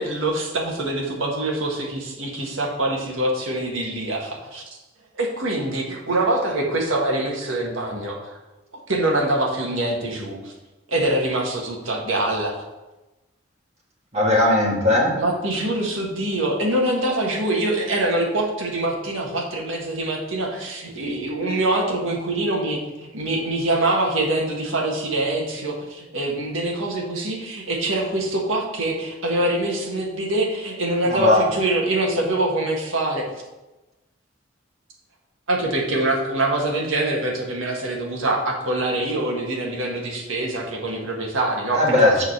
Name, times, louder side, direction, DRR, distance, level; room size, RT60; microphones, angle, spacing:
voice 1, 0.0-4.6 5.1-8.3 8.9-10.5 10.9-12.5 15.2-33.2 35.5-42.2, right 1 dB, 90° right, 0 dB, 1.7 m, -24 dB
voice 2, 14.1-15.1 31.1-31.5 41.7-42.2, left 2 dB, 35° right, -3 dB, 1.7 m, -18 dB
6.8 x 3.9 x 6.4 m, 1.0 s
head